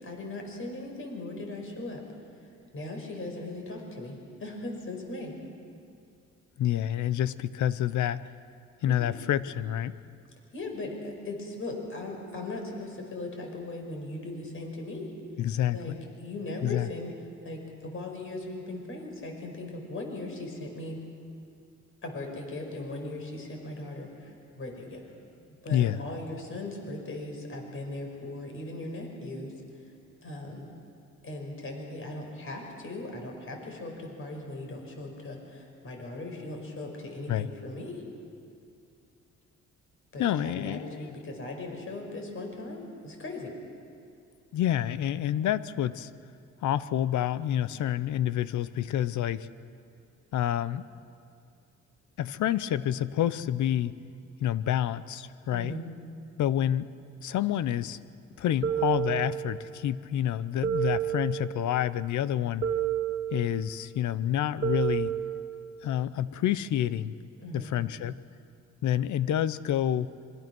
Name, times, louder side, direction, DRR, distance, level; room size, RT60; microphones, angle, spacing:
voice 1, 0.0-2.0 2.7-5.3 8.9-9.1 10.5-15.1 15.7-17.1 17.4-21.0 22.0-25.0 25.6-29.5 30.2-30.7 31.2-38.0 40.1-43.5 55.5-55.8 67.4-67.7, left 2 dB, 45° left, 2 dB, 5.6 m, -38 dB
voice 2, 6.6-8.3 8.8-10.0 15.4-16.0 16.6-16.9 25.7-26.0 37.3-37.5 40.2-41.1 44.5-46.1 46.6-49.5 50.3-50.8 52.2-53.9 54.4-55.8 56.4-56.9 57.2-58.0 58.4-62.7 63.3-65.1 65.8-67.1 67.5-68.2 68.8-70.1, left 11 dB, 75° left, 15 dB, 0.9 m, -28 dB
sound 1, 58.6-59.8 60.6-61.8 62.6-63.8 64.6-65.8, right 10 dB, 40° right, 2.1 m, -30 dB
26.0 x 23.5 x 6.2 m, 2.4 s
cardioid pair, 90°, 30 cm